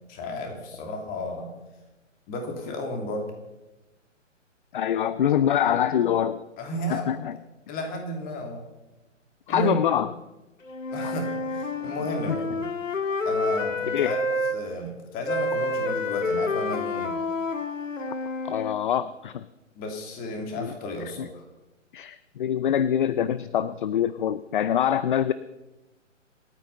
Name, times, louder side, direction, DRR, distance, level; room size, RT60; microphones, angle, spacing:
voice 1, 0.1-1.5 2.3-3.3 6.6-7.1 7.7-8.7 9.5-9.7 10.9-12.6 13.2-17.1 19.7-21.4, left 1 dB, 25° left, 4 dB, 3.0 m, -33 dB
voice 2, 4.7-6.4 6.9-7.4 9.5-10.1 11.0-11.1 12.3-12.4 13.9-14.2 18.4-19.5 20.6-20.7 21.2-21.3 21.9-25.3, left 9 dB, 40° left, 16 dB, 0.5 m, -25 dB
Wind instrument woodwind instrument, 10.6-14.6 15.2-18.8, left 2 dB, 80° left, 1.8 m, -28 dB
27.0 x 9.2 x 5.6 m, 1.0 s
figure-of-eight pair, 135°, 38 cm